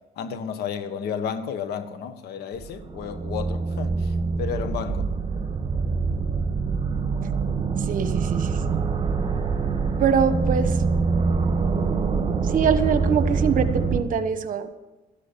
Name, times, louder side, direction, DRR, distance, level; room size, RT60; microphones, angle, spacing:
voice 1, 0.2-5.1, left 7 dB, 75° left, 10 dB, 1.5 m, -32 dB
sound 1, 2.6-14.0, right 4 dB, 30° right, 2.1 m, -25 dB
voice 2, 7.9-8.9 10.0-10.8 12.4-14.7, right 7 dB, 55° right, 11 dB, 1.2 m, -24 dB
13.5 x 10.5 x 7.4 m, 1.1 s
cardioid pair, 110°, 17 cm